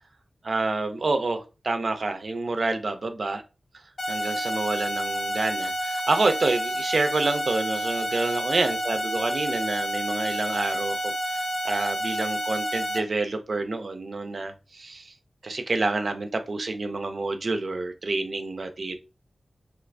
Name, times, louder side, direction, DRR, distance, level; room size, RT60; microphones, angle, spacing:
voice 1, 0.4-3.4 4.1-15.1 15.4-18.9, right 3 dB, 55° right, 8 dB, 0.5 m, -28 dB
sound 1, 4.0-13.0, right 1 dB, 60° left, 0.6 m, -29 dB
3.1 x 2.5 x 3.2 m, 0.31 s
wide cardioid pair, 105°, 0 cm